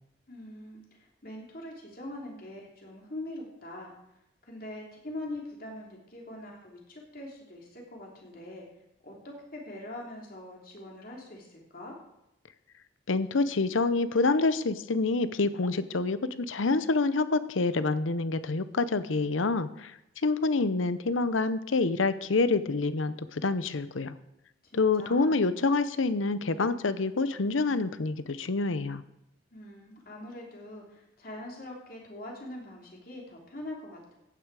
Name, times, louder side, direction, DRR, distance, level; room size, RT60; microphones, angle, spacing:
voice 1, 0.3-3.9 4.5-8.7 9.0-12.0 24.6-25.4 29.5-34.1, left 1 dB, 50° left, -1 dB, 3.1 m, -43 dB
voice 2, 13.1-19.9 20.2-24.2 24.7-29.0, left 3 dB, 85° left, 14 dB, 0.7 m, -27 dB
15.0 x 9.6 x 4.8 m, 0.85 s
head